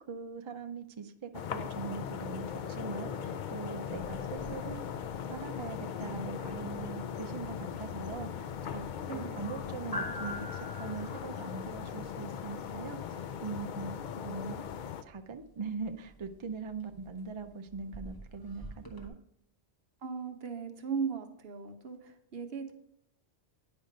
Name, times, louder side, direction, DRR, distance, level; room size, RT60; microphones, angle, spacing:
voice 1, 0.0-8.8 9.1-14.0 14.2-14.6 15.0-19.2, right 5 dB, 45° right, 6 dB, 0.4 m, -41 dB
sound 1, 1.3-15.0, left 8 dB, 55° left, 0.5 m, -39 dB
voice 2, 9.1-9.4 20.0-22.7, right 6 dB, 60° right, 5 dB, 1.1 m, -37 dB
sound 2, 9.9-19.1, left 1 dB, 20° left, 1.0 m, -48 dB
9.4 x 5.3 x 5.1 m, 0.74 s
omnidirectional pair, 1.2 m